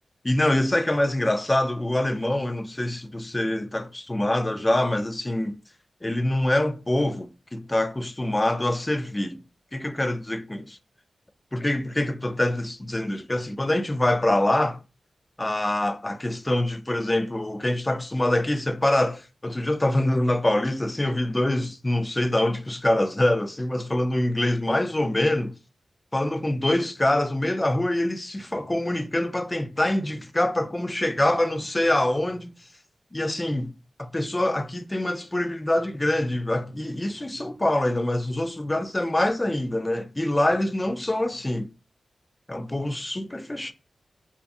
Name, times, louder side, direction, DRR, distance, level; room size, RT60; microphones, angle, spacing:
voice 1, 0.2-5.6 6.0-9.4 9.7-10.8 11.5-14.8 15.4-25.5 26.1-32.5 33.1-33.7 34.0-41.7 42.5-43.7, left 1 dB, 20° left, 0.3 m, -25 dB
2.4 x 2.4 x 2.5 m
cardioid pair, 70°, 0 cm